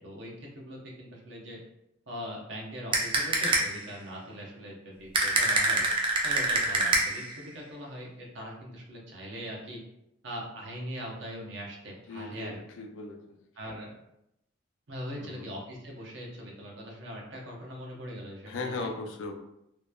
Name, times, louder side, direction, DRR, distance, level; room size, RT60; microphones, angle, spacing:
voice 1, 0.0-1.6 2.1-5.9 6.2-9.8 10.2-12.6 13.6-13.9 14.9-18.9, equal, 65° right, -2 dB, 0.7 m, -41 dB
sound 1, 2.9-3.8 5.1-7.3, right 2 dB, 25° right, 0.3 m, -26 dB
voice 2, 12.1-13.4 15.2-15.5 18.5-19.3, left 3 dB, 75° left, 4 dB, 0.4 m, -37 dB
2.9 x 2.1 x 2.2 m, 0.81 s
head